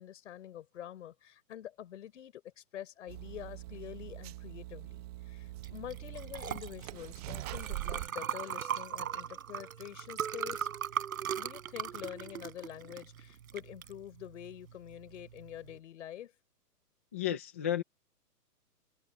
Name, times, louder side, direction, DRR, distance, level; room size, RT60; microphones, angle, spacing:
voice 1, 0.0-10.7 11.4-16.3, left 11 dB, 50° left, 5.4 m, -46 dB
sound 1, 3.1-8.1, right 17 dB, 25° right, 1.4 m, -43 dB
Liquid, 5.6-15.7, right 9 dB, 60° right, 4.8 m, -39 dB
voice 2, 17.1-17.8, left 11 dB, 10° left, 0.6 m, -32 dB
open air
hypercardioid pair, 170°, 48 cm